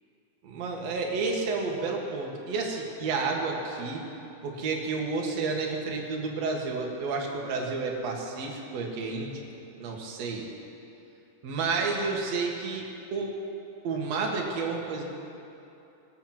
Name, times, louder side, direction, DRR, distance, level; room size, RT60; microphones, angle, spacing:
voice 1, 0.4-4.0 4.4-9.4 9.8-10.5 11.4-12.9 13.1-13.4 13.8-15.1, right 4 dB, 50° right, 0 dB, 2.2 m, -30 dB
21.0 x 8.6 x 6.0 m, 2.8 s
omnidirectional pair, 4.6 m